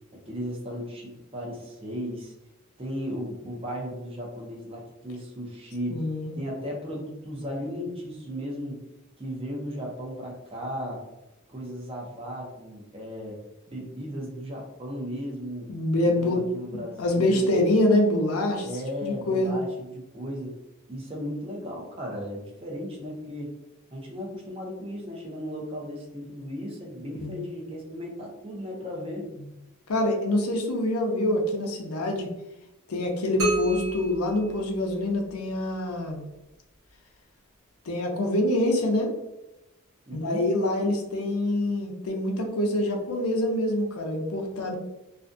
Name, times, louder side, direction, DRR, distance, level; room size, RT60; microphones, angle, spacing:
voice 1, 0.1-2.3 2.8-6.0 6.3-8.8 9.2-11.0 11.5-13.4 13.7-15.7 16.2-17.5 18.6-20.6 20.9-23.5 23.9-29.3 40.1-40.5, equal, 25° right, -2 dB, 0.6 m, -36 dB
voice 2, 5.9-6.4 15.7-18.7 19.0-19.6 27.2-27.4 29.9-32.3 32.9-36.2 37.9-39.2 40.1-44.8, left 1 dB, 85° left, 2 dB, 0.6 m, -25 dB
sound 1, 33.4-35.3, right 2 dB, 70° right, 1.0 m, -30 dB
2.5 x 2.3 x 2.5 m, 0.94 s
head